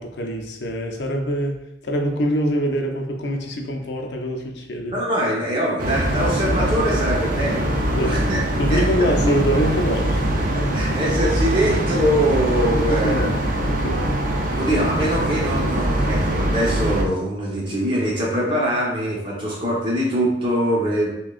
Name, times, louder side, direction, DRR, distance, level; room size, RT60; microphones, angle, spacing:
voice 1, 0.0-1.6 1.8-5.0 8.0-8.2 8.6-10.3 12.9-13.3 13.6-14.1, equal, 75° left, 2 dB, 0.6 m, -24 dB
voice 2, 4.8-8.4 8.7-9.3 10.3-13.3 14.6-21.1, equal, 30° right, -4 dB, 1.0 m, -23 dB
sound 1, 5.8-17.0, right 1 dB, 55° right, 0.6 m, -22 dB
5.9 x 2.3 x 2.5 m, 0.86 s
head